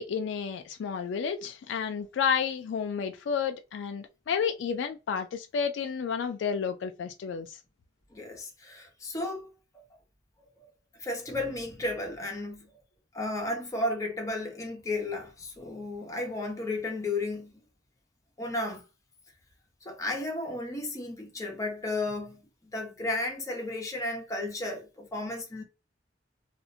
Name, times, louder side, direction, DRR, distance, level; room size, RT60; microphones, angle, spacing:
voice 1, 0.0-7.5, left 6 dB, 90° left, 0.3 m, -31 dB
voice 2, 8.1-9.5 9.7-9.8 10.4-10.5 11.0-12.7 13.1-17.5 18.4-18.8 19.8-22.4 22.7-25.6, left 2 dB, 20° left, 0.7 m, -33 dB
2.5 x 2.1 x 2.6 m
head